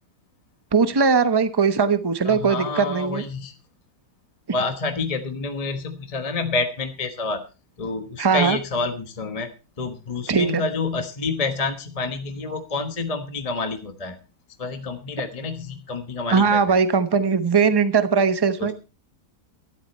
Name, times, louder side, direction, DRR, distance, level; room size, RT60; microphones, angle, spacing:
voice 1, 0.7-3.2 8.2-8.6 10.3-10.6 16.3-18.7, right 5 dB, 20° right, 0.8 m, -20 dB
voice 2, 2.2-3.5 4.5-7.4 7.8-9.5 9.8-14.2 14.6-16.8 18.6-18.7, left 3 dB, 25° left, 1.1 m, -28 dB
13.0 x 11.5 x 4.3 m
omnidirectional pair, 1.6 m